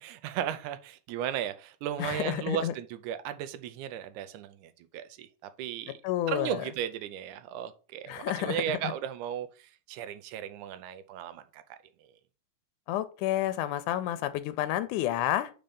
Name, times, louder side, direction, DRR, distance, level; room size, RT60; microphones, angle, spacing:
voice 1, 0.0-6.0 6.3-11.8, right 10 dB, 85° right, 2.1 m, -36 dB
voice 2, 2.0-2.7 6.0-6.6 8.1-8.9 12.9-15.5, left 13 dB, 85° left, 2.1 m, -30 dB
5.3 x 4.4 x 5.2 m
omnidirectional pair, 3.5 m